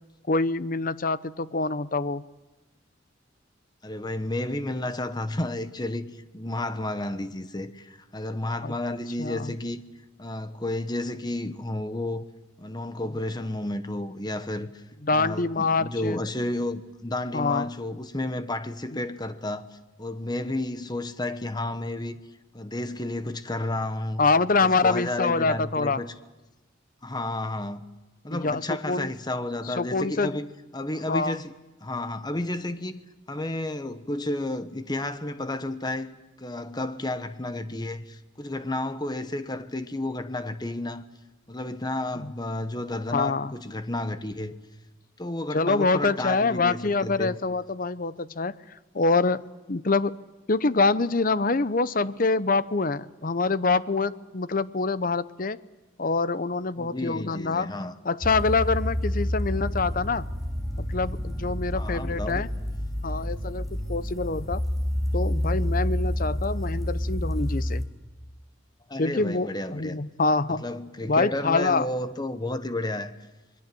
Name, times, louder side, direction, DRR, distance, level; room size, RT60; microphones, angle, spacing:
voice 1, 0.3-2.2 8.6-8.7 9.2-9.5 15.0-16.2 17.3-17.7 24.2-26.0 28.3-29.1 29.7-30.4 31.1-31.4 42.2-42.3 43.1-43.5 45.5-48.5 48.9-49.4 49.7-50.2 50.5-55.6 56.0-57.7 58.0-60.3 60.8-62.5 63.0-64.6 65.1-67.9 69.0-70.6 71.1-71.9, left 3 dB, 45° left, 0.7 m, -25 dB
voice 2, 3.8-9.8 10.2-12.2 12.6-14.8 15.1-19.7 20.0-22.2 22.5-24.2 24.6-26.1 27.0-27.8 28.2-30.5 30.7-31.5 31.8-33.0 33.3-41.0 41.5-44.5 45.2-47.4 56.8-57.9 61.7-62.5 68.9-70.0 70.5-73.1, left 1 dB, 20° left, 1.1 m, -31 dB
sound 1, 58.2-67.9, left 1 dB, ahead, 2.9 m, -29 dB
27.0 x 22.0 x 7.8 m
head